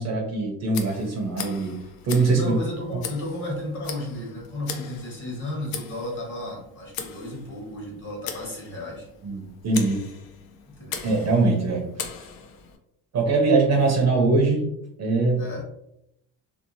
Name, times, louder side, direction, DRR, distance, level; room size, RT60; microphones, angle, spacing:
voice 1, 0.0-1.8 2.0-2.6 9.2-10.0 11.0-12.0 13.1-15.4, right 3 dB, 40° right, 1 dB, 0.6 m, -22 dB
Tick, 0.7-12.8, left 7 dB, 60° left, 0.5 m, -39 dB
voice 2, 2.3-9.1 10.7-11.1 15.4-15.6, left 1 dB, 30° left, -3 dB, 1.2 m, -33 dB
2.8 x 2.1 x 2.6 m, 0.82 s
cardioid pair, 110°, 40 cm